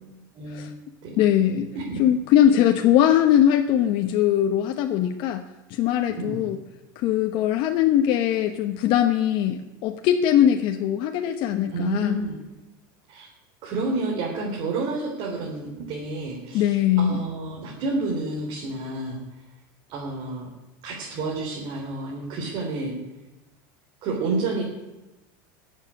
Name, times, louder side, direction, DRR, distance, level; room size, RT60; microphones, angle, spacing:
voice 1, 0.3-0.7 1.0-1.2 1.7-2.0 6.1-6.4 11.7-12.4 13.1-13.3 13.6-19.2 19.9-20.5 20.8-22.9 24.0-24.6, right 2 dB, 50° right, -1 dB, 3.4 m, -30 dB
voice 2, 1.2-1.7 2.0-5.4 5.7-6.6 7.0-12.2 16.5-17.2, left 10 dB, 55° left, 6 dB, 1.0 m, -21 dB
14.0 x 7.4 x 9.7 m, 1.0 s
supercardioid pair, 120°, 11 cm